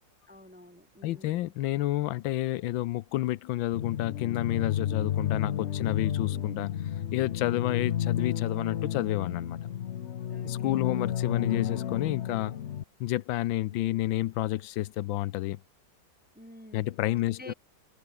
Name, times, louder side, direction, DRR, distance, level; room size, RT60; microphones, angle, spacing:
voice 1, 0.3-1.5 6.3-6.4 10.3-11.0 13.7-14.0 16.3-17.0 17.3-17.5, left 1 dB, 5° right, 1.9 m, -50 dB
voice 2, 1.0-6.7 7.1-9.6 10.4-12.6 13.0-15.6 16.7-17.5, left 15 dB, 85° left, 1.4 m, -30 dB
sound 1, 3.7-12.8, left 9 dB, 55° left, 0.7 m, -31 dB
omnidirectional pair, 2.1 m